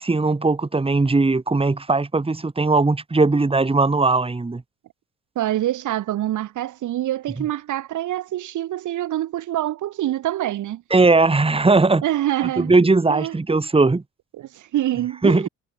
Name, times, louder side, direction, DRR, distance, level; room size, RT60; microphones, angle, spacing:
voice 1, 0.0-4.6 10.9-12.0 12.6-14.0 15.2-15.4, right 3 dB, 20° right, 2.8 m, -18 dB
voice 2, 5.4-10.8 12.0-12.7 13.1-13.3 14.4-15.5, right 13 dB, 75° right, 2.3 m, -25 dB
cardioid pair, 90°, 30 cm